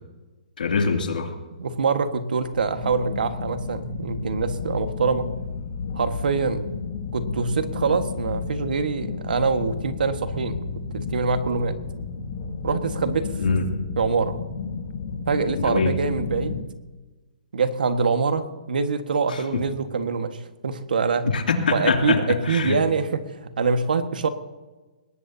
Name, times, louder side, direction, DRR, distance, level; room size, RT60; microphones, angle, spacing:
voice 1, 0.6-1.3 13.4-13.7 15.5-15.9 19.3-19.6 21.3-22.8, left 5 dB, 85° left, 3 dB, 2.8 m, -24 dB
voice 2, 1.6-5.3 5.9-6.6 7.1-10.6 10.9-11.8 12.6-13.6 14.0-14.4 15.3-16.6 17.5-21.3 21.7-24.3, right 4 dB, 80° right, 8 dB, 1.6 m, -24 dB
sound 1, 2.4-16.7, left 5 dB, 45° left, 1.4 m, -32 dB
21.5 x 18.5 x 2.8 m, 1.2 s
hypercardioid pair, 165°, 5 cm